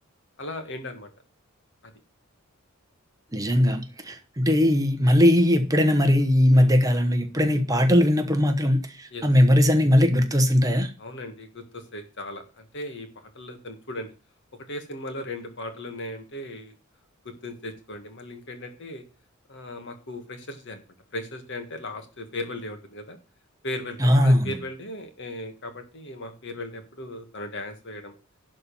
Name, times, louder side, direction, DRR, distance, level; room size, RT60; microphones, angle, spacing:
voice 1, 0.4-1.1 6.5-6.7 9.1-9.3 11.0-14.1 14.7-16.7 17.4-19.0 19.5-20.8 21.1-23.2 23.6-28.1, left 1 dB, 55° left, 1.9 m, -37 dB
voice 2, 3.3-10.9 24.0-24.5, left 1 dB, 15° right, 1.1 m, -20 dB
11.5 x 4.3 x 7.1 m
head